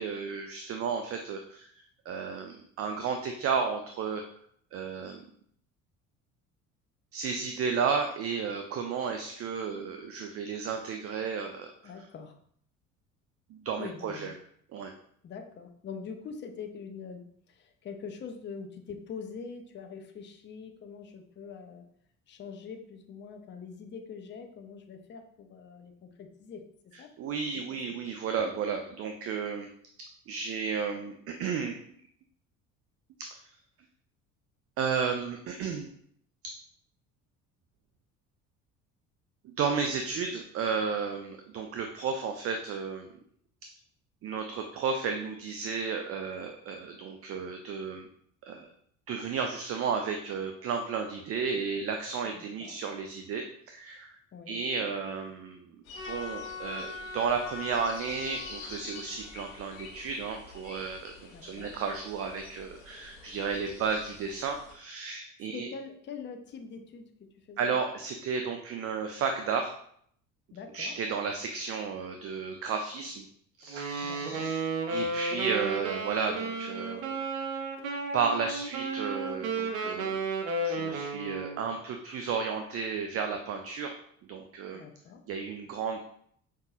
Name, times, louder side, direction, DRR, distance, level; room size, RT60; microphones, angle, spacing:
voice 1, 0.0-4.3 4.7-5.2 7.1-11.7 13.5-14.3 14.7-14.9 27.2-29.7 30.3-31.8 34.8-35.9 39.6-43.1 44.2-48.1 48.4-48.7 49.1-54.2 54.5-55.8 56.0-65.7 67.6-69.7 70.7-73.3 73.6-74.6 74.9-77.1 78.1-80.2 80.6-84.0 84.3-84.8 85.3-86.0, right 5 dB, 35° right, 5 dB, 0.4 m, -33 dB
voice 2, 11.8-12.3 13.8-14.3 15.2-21.9 22.3-26.7 27.0-27.1 27.5-27.8 52.2-52.8 54.3-54.6 61.3-61.7 65.5-67.7 70.5-70.9 74.0-74.5 84.7-85.2, left 5 dB, 30° left, 6 dB, 0.5 m, -44 dB
sound 1, 55.8-64.7, left 3 dB, 65° left, 1.1 m, -48 dB
Trumpet, 55.9-60.3, left 4 dB, 15° left, 1.4 m, -43 dB
Wind instrument woodwind instrument, 73.7-81.7, right 3 dB, 80° right, 0.6 m, -33 dB
5.3 x 2.7 x 2.4 m, 0.65 s
hypercardioid pair, 60°, 40 cm